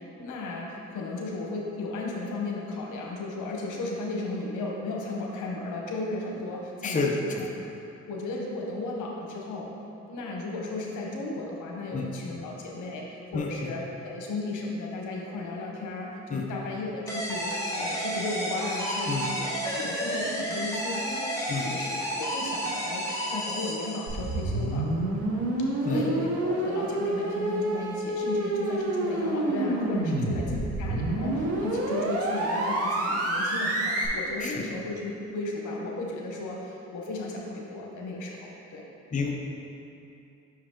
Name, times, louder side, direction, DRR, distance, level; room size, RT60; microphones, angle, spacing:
voice 1, 0.1-7.1 8.1-9.7 10.1-19.5 19.7-24.9 25.8-38.9, left 2 dB, 80° left, -1 dB, 1.0 m, -35 dB
voice 2, 6.8-7.2 11.9-12.1 13.3-13.5 16.3-16.4 19.1-19.2 21.5-21.7 25.8-26.0 30.1-30.6 34.4-34.7 39.1-39.3, left 4 dB, 25° left, 0 dB, 0.6 m, -29 dB
sound 1, 17.1-24.4, equal, 10° left, 1.3 m, -31 dB
sound 2, 24.1-34.1, right 2 dB, 50° right, 1.0 m, -28 dB
6.1 x 4.8 x 3.7 m, 2.8 s
cardioid pair, 90°, 30 cm